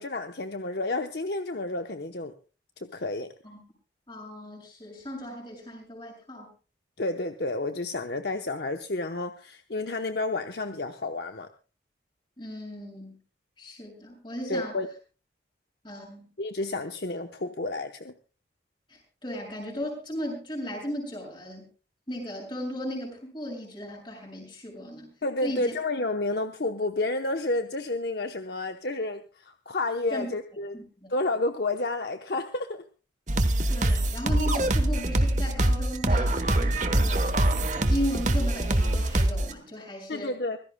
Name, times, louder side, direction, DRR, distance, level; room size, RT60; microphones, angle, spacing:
voice 1, 0.0-2.3 2.8-3.3 7.0-11.5 14.5-14.9 16.4-18.1 25.2-30.8 31.1-32.8 40.1-40.6, left 2 dB, 60° left, 6 dB, 0.9 m, -30 dB
voice 2, 4.1-6.5 12.4-13.2 13.6-14.7 15.8-16.3 18.9-21.7 22.1-25.1 25.4-25.7 30.1-30.3 30.7-31.1 33.7-37.5 37.8-40.3, equal, 25° left, 0 dB, 6.9 m, -36 dB
sound 1, 33.3-39.5, right 1 dB, 40° right, 1.1 m, -24 dB
24.5 x 16.0 x 2.2 m, 0.35 s
head